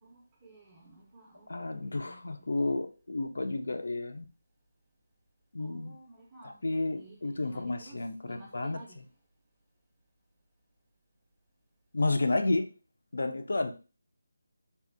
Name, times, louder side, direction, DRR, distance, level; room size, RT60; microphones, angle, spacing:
voice 1, 0.0-2.5 5.6-9.0, right 2 dB, 10° right, 0.6 m, -54 dB
voice 2, 1.5-4.2 5.5-5.9 6.4-8.8 11.9-12.7 13.1-13.7, left 2 dB, 70° left, 0.4 m, -31 dB
3.5 x 2.0 x 2.5 m
figure-of-eight pair, 175°, 0 cm